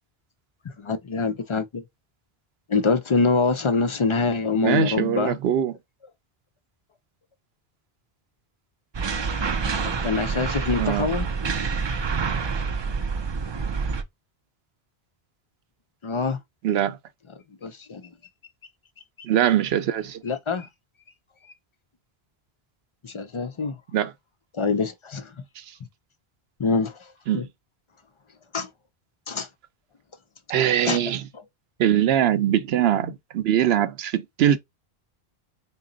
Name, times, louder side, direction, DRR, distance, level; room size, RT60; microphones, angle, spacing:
voice 1, 0.8-1.8 2.7-5.4 10.0-11.2 16.0-16.4 17.6-18.0 20.2-20.7 23.0-23.7 24.5-25.3 26.6-26.9 27.3-27.4 28.5-28.7 29.3-29.5 30.9-31.0, left 4 dB, 50° left, 0.3 m, -24 dB
voice 2, 4.5-5.8 10.8-11.1 16.6-17.0 19.2-20.2 23.9-24.1 25.6-25.7 27.3-27.5 30.5-31.3 31.8-34.6, right 10 dB, 80° right, 0.8 m, -22 dB
sound 1, 8.9-14.0, right 5 dB, 45° right, 0.3 m, -27 dB
3.9 x 2.1 x 3.8 m
omnidirectional pair, 1.0 m